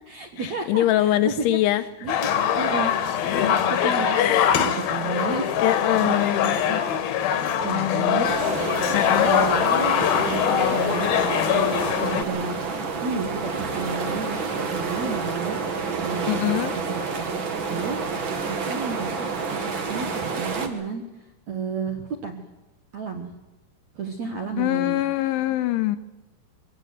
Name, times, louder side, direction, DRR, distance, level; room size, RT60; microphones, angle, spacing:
voice 1, 0.1-2.9 3.5-4.4 4.6-6.2 6.4-6.9 7.6-8.3 9.2-11.1 11.5-11.7 12.0-12.6 13.0-18.0 18.5-22.5 22.9-23.3 24.0-25.0, right 5 dB, 65° right, 3 dB, 1.8 m, -32 dB
voice 2, 0.7-1.8 3.3-3.5 3.8-4.7 5.6-6.8 7.7-8.1 8.9-9.3 16.3-16.7 24.6-26.0, left 14 dB, 85° left, 10 dB, 3.4 m, -23 dB
sound 1, 2.1-12.2, left 9 dB, 65° left, 2.9 m, -23 dB
sound 2, 8.2-20.7, right 4 dB, 80° right, 1.0 m, -29 dB
23.5 x 16.5 x 9.6 m, 1.1 s
omnidirectional pair, 5.4 m